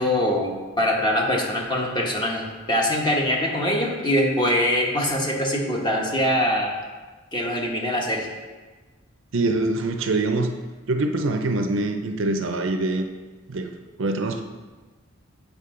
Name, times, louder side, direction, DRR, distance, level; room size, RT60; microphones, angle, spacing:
voice 1, 0.0-6.7 7.3-8.3, left 1 dB, 20° left, -1 dB, 1.1 m, -23 dB
voice 2, 9.3-10.5 10.9-13.1 13.5-13.7 14.0-14.4, right 2 dB, 70° right, 6 dB, 0.6 m, -24 dB
8.3 x 5.0 x 3.8 m, 1.3 s
head